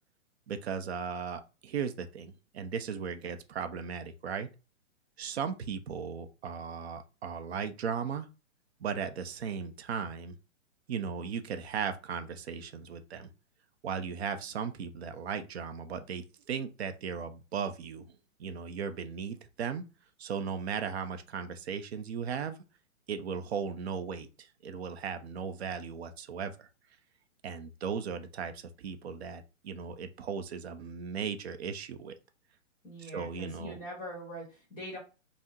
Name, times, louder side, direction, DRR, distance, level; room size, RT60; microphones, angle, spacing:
voice 1, 0.5-4.5 5.2-8.3 8.8-10.3 10.9-13.3 13.8-19.8 20.2-22.6 23.1-26.7 27.4-32.1 33.1-33.8, right 6 dB, 50° right, 0.5 m, -37 dB
voice 2, 32.8-35.0, equal, 20° left, 1.2 m, -42 dB
3.5 x 2.0 x 2.7 m
hypercardioid pair, 150°, 40 cm